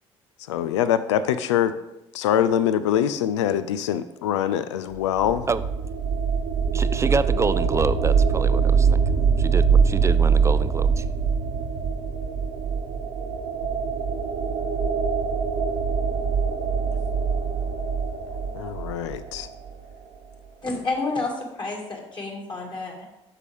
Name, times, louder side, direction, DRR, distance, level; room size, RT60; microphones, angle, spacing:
voice 1, 0.5-1.8 2.1-5.5 18.5-19.5, left 10 dB, 75° left, 13 dB, 0.4 m, -24 dB
sound 1, 4.9-19.8, right 6 dB, 60° right, 1.0 m, -23 dB
voice 2, 6.7-11.0, right 4 dB, 20° right, 15 dB, 0.3 m, -27 dB
voice 3, 20.6-23.0, left 3 dB, 30° left, -1 dB, 2.1 m, -30 dB
8.1 x 5.8 x 3.4 m, 0.89 s
figure-of-eight pair, 50°, 15 cm